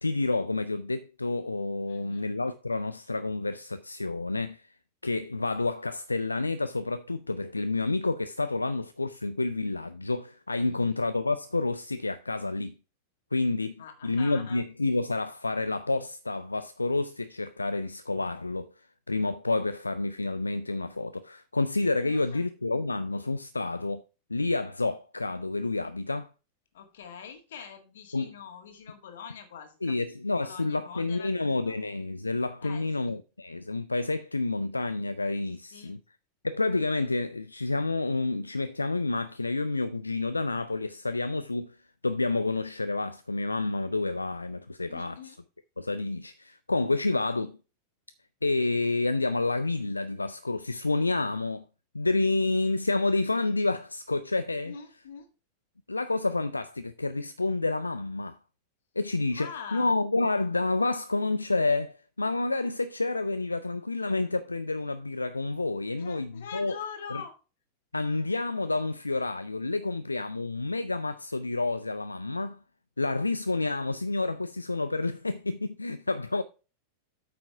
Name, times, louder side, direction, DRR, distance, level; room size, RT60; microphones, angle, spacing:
voice 1, 0.0-4.7 5.0-12.7 13.3-18.7 19.1-24.0 24.3-26.3 28.1-28.4 29.8-36.0 36.4-41.8 42.0-45.2 45.8-47.6 48.4-51.6 51.9-54.7 55.9-58.4 59.0-66.8 67.1-67.2 67.9-72.6 73.0-76.4, left 3 dB, 80° left, 0.4 m, -29 dB
voice 2, 1.9-2.3 10.6-10.9 13.8-14.6 22.0-22.5 26.7-29.9 30.4-31.3 31.7-31.8 32.6-33.2 35.5-35.9 44.9-45.4 54.6-55.3 59.3-59.9 66.0-67.4, left 7 dB, 60° left, 1.8 m, -44 dB
8.5 x 5.9 x 4.6 m
figure-of-eight pair, 90°, 0 cm